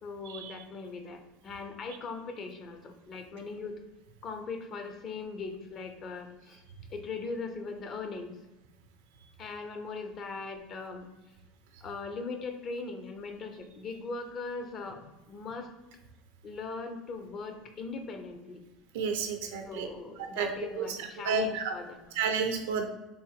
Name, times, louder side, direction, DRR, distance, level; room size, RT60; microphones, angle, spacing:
voice 1, 0.0-3.8 4.2-6.6 6.9-8.4 9.4-11.1 11.8-15.7 16.4-18.6 19.4-22.1, left 4 dB, 40° left, 6 dB, 0.6 m, -40 dB
voice 2, 18.9-19.9 20.3-20.5 20.8-21.7 22.2-22.9, right 6 dB, 85° right, 6 dB, 0.5 m, -31 dB
3.4 x 2.6 x 3.5 m, 1.0 s
supercardioid pair, 110°, 0 cm